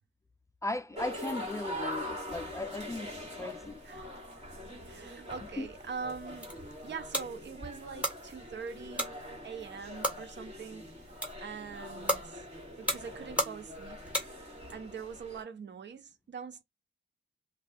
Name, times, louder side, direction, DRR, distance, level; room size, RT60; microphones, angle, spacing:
voice 1, 0.6-3.1 3.4-3.8 5.6-5.7, left 2 dB, 15° left, 0.3 m, -37 dB
sound 1, 1.0-15.4, left 1 dB, 35° right, 1.7 m, -43 dB
voice 2, 3.8-4.2 4.9-6.5 6.8-9.1 9.4-10.9 11.4-12.4 12.8-14.0 14.7-16.6, right 6 dB, 65° right, 0.6 m, -43 dB
sound 2, 6.1-14.7, equal, 5° right, 1.6 m, -37 dB
2.7 x 2.3 x 3.5 m
cardioid pair, 85°, 20 cm